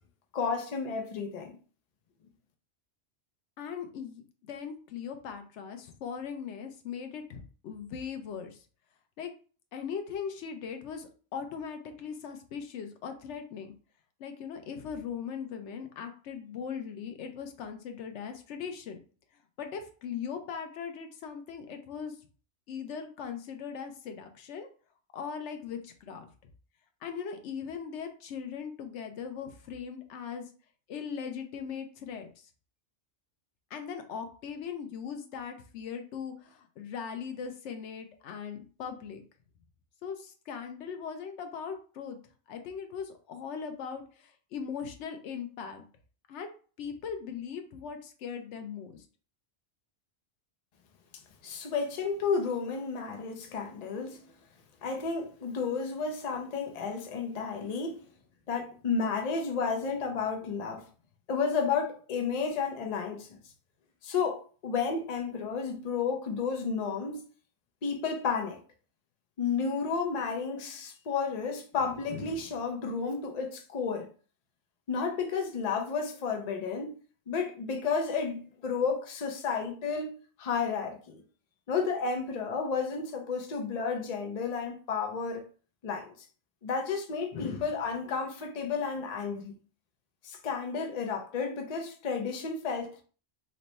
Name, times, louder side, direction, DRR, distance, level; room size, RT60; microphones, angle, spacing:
voice 1, 0.3-1.6 51.4-54.3 54.8-58.0 58.5-60.8 61.3-63.3 64.0-67.2 67.8-68.6 69.4-74.1 74.9-76.9 77.3-80.1 80.4-81.2 81.7-85.5 85.8-86.1 86.6-89.5 90.2-93.0, left 5 dB, 45° left, 0.6 m, -32 dB
voice 2, 3.6-8.6 9.2-9.3 9.7-13.7 14.2-19.0 19.6-22.2 22.7-24.7 25.1-26.3 27.0-30.5 30.9-32.5 33.7-39.2 40.0-42.2 42.5-45.8 46.3-46.5 46.8-49.1, left 7 dB, 80° left, 0.9 m, -39 dB
3.1 x 2.2 x 4.0 m
omnidirectional pair, 1.2 m